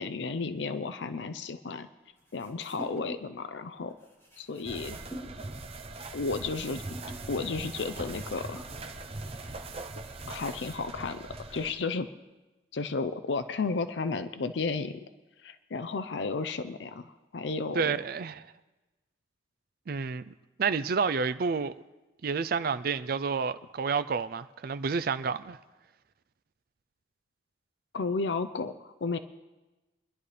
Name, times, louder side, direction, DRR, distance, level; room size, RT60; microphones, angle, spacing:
voice 1, 0.0-1.9 2.3-3.9 4.4-5.0 6.1-6.8 7.3-8.6 10.3-12.1 12.7-15.0 15.4-17.9 27.9-28.7 29.0-29.2, left 4 dB, 80° left, 0.5 m, -33 dB
sound 1, 2.2-3.4 3.7-11.0, right 1 dB, 15° left, 3.7 m, -48 dB
sound 2, 4.6-11.7, right 3 dB, 35° right, 0.8 m, -41 dB
voice 2, 17.7-18.5 19.9-20.3 20.6-21.7 22.2-25.6, right 5 dB, 55° right, 0.4 m, -29 dB
25.0 x 11.0 x 3.3 m
head